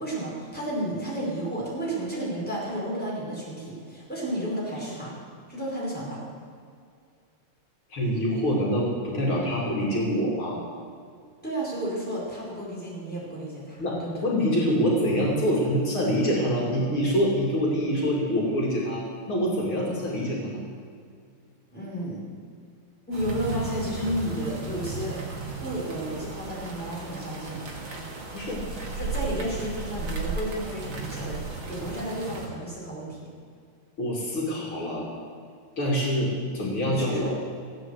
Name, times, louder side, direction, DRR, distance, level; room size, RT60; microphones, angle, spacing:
voice 1, 0.0-5.1 5.5-6.2 11.4-14.2 21.7-22.2 23.1-25.2 25.6-27.6 29.0-33.2 36.8-37.3, right 1 dB, 5° left, -6 dB, 5.1 m, -32 dB
voice 2, 7.9-10.6 13.8-20.6 28.3-28.6 34.0-35.1 35.8-37.2, equal, 70° left, -3 dB, 3.4 m, -25 dB
sound 1, 23.1-32.5, right 3 dB, 65° right, 2.8 m, -35 dB
16.0 x 8.8 x 8.0 m, 2.2 s
omnidirectional pair, 2.4 m